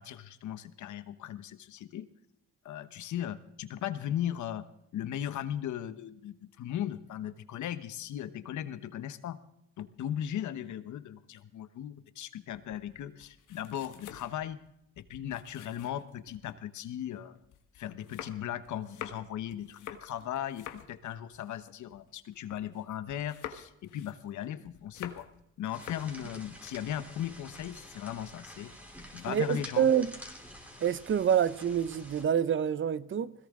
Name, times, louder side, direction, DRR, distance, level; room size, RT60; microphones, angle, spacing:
voice 1, 0.0-2.1 2.6-4.6 4.9-9.4 9.8-14.6 15.0-17.4 17.7-25.3 25.6-28.7 29.1-29.9, left 10 dB, 70° left, 1.1 m, -37 dB
sound 1, 12.5-16.6 17.0-22.8 23.1-25.4 25.7-26.2, left 10 dB, 90° left, 1.4 m, -47 dB
sound 2, 25.7-32.2, equal, 5° right, 3.4 m, -49 dB
voice 2, 29.3-30.1 30.8-33.3, right 8 dB, 40° right, 0.7 m, -27 dB
21.0 x 17.5 x 3.7 m
cardioid pair, 90°, 30 cm